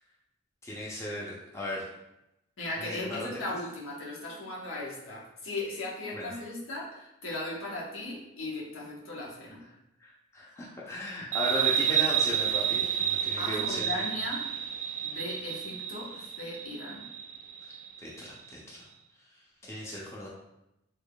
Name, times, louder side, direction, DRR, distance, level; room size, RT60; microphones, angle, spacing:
voice 1, 0.6-1.9 2.8-3.3 6.1-6.3 10.0-13.9 17.6-17.7 18.0-18.8 19.7-20.3, left 1 dB, 15° left, -5 dB, 0.6 m, -36 dB
voice 2, 2.6-9.6 13.4-14.4 15.0-17.1, left 2 dB, 85° left, -4 dB, 1.0 m, -37 dB
sound 1, 11.3-18.5, right 9 dB, 40° right, 0.3 m, -30 dB
3.5 x 3.3 x 2.3 m, 0.88 s
head